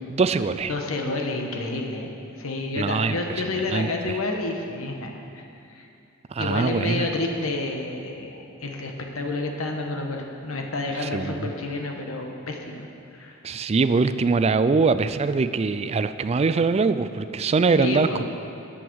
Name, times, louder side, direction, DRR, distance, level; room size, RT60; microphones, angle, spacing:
voice 1, 0.1-0.7 2.8-3.2 3.7-4.2 6.3-7.1 11.0-11.5 13.4-18.2, right 4 dB, 30° right, 12 dB, 0.3 m, -23 dB
voice 2, 0.7-2.1 2.4-5.4 5.7-5.9 6.4-12.9 13.1-13.4 17.8-18.2, left 2 dB, 80° left, 2 dB, 1.2 m, -29 dB
13.5 x 8.8 x 4.7 m, 2.6 s
head